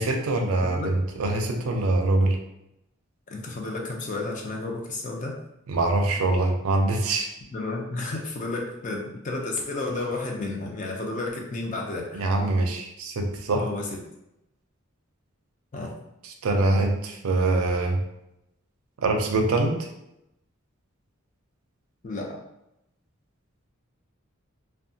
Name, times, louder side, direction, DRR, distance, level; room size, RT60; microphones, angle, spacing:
voice 1, 0.0-2.4 5.7-7.3 12.1-13.6 16.4-18.0 19.0-19.9, right 2 dB, 85° right, 3 dB, 0.5 m, -24 dB
voice 2, 3.3-5.4 7.5-12.2 13.5-14.0 15.7-15.9 22.0-22.4, left 2 dB, 35° left, 0 dB, 0.5 m, -32 dB
2.7 x 2.2 x 2.6 m, 0.85 s
head